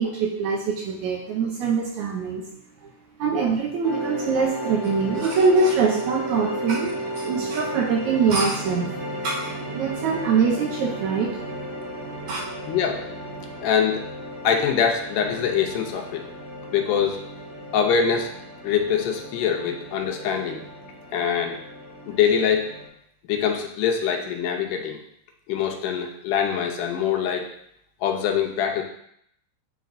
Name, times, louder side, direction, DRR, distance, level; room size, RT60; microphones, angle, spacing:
voice 1, 0.0-11.4 12.3-12.4, right 5 dB, 75° right, -1 dB, 1.9 m, -24 dB
sound 1, 3.8-22.9, equal, 60° right, 2.6 m, -34 dB
voice 2, 12.7-13.0 13.6-14.0 14.4-16.2 16.7-17.2 17.7-18.3 18.6-20.6 21.1-21.6 22.1-22.7 23.2-25.0 25.5-27.5 28.0-28.8, left 7 dB, 90° left, 2 dB, 2.3 m, -23 dB
9.2 x 4.1 x 2.5 m, 0.73 s
omnidirectional pair, 3.6 m